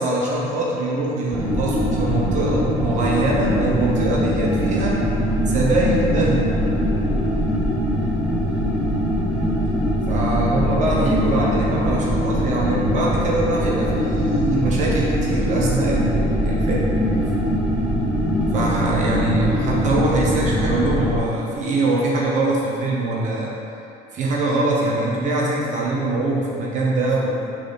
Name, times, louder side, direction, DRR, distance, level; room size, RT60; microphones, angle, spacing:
voice 1, 0.0-5.0 5.5-6.5 10.1-16.9 17.2-17.3 18.5-23.5 24.1-27.5, right 2 dB, 40° right, -4 dB, 1.0 m, -23 dB
sound 1, 1.3-21.2, equal, 5° right, 0.8 m, -22 dB
6.1 x 4.1 x 4.3 m, 2.7 s
cardioid pair, 150°, 18 cm